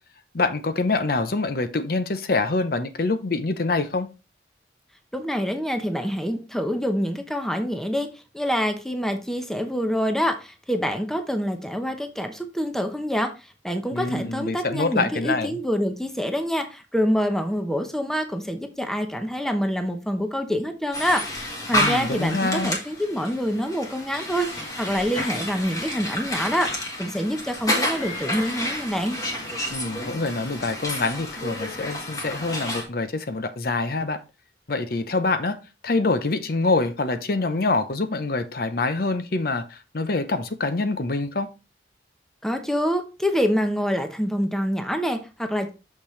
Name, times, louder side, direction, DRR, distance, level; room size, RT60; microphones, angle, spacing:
voice 1, 0.3-4.1 13.9-15.6 21.7-22.7 29.7-34.2 34.7-35.6 35.8-41.5, left 3 dB, 55° left, 0.7 m, -25 dB
voice 2, 5.1-8.1 8.3-29.2 42.4-45.7, equal, 5° left, 0.8 m, -26 dB
sound 1, 20.9-32.8, left 1 dB, 20° left, 1.5 m, -30 dB
6.6 x 5.9 x 3.1 m
head